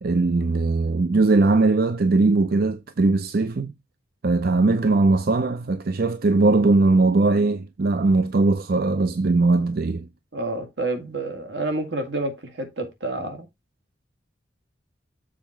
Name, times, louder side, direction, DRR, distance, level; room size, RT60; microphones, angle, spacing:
voice 1, 0.0-3.7 4.2-10.1, right 3 dB, 55° right, 0.5 m, -20 dB
voice 2, 10.3-13.5, right 2 dB, 80° right, 2.1 m, -29 dB
7.3 x 4.5 x 4.5 m
head